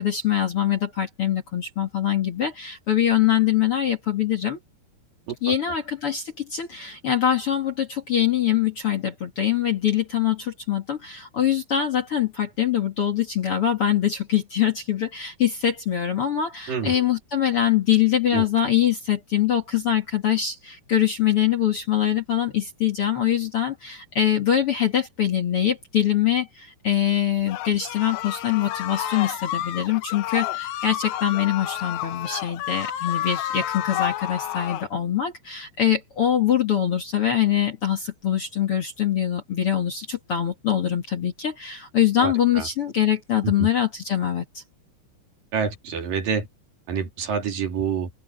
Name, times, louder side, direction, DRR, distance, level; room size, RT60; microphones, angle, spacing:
voice 1, 0.0-4.6 5.4-44.6, left 10 dB, 40° left, 2.5 m, -23 dB
voice 2, 16.7-17.0 18.3-18.5 42.2-42.7 43.4-43.7 45.5-46.5 46.9-48.1, right 6 dB, 60° right, 4.4 m, -27 dB
sound 1, 27.5-34.9, left 13 dB, 70° left, 2.6 m, -30 dB
open air
omnidirectional pair, 4.6 m